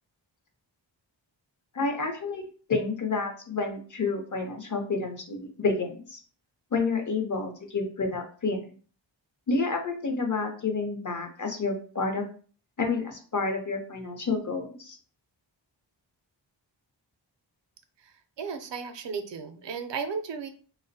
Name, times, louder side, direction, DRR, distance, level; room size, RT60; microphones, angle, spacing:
voice 1, 1.7-6.2 6.7-8.6 9.5-12.2 12.8-15.0, left 4 dB, 40° left, 4 dB, 0.7 m, -29 dB
voice 2, 18.0-20.5, right 5 dB, 65° right, 8 dB, 0.5 m, -35 dB
2.4 x 2.0 x 2.6 m, 0.41 s
wide cardioid pair, 50°, 46 cm